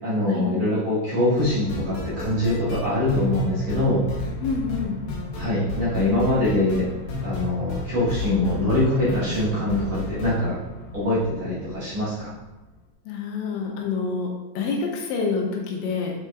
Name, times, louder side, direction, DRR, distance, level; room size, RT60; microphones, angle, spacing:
voice 1, 0.0-4.0 5.3-6.8 7.2-10.6 10.9-12.3, left 1 dB, 50° right, -11 dB, 2.1 m, -23 dB
sound 1, 1.4-12.3, left 1 dB, 65° left, 2.6 m, -32 dB
voice 2, 4.4-5.0 13.1-14.3 14.6-16.1, left 4 dB, 85° left, 1 dB, 3.3 m, -27 dB
7.6 x 6.6 x 2.5 m, 1.0 s
omnidirectional pair, 5.3 m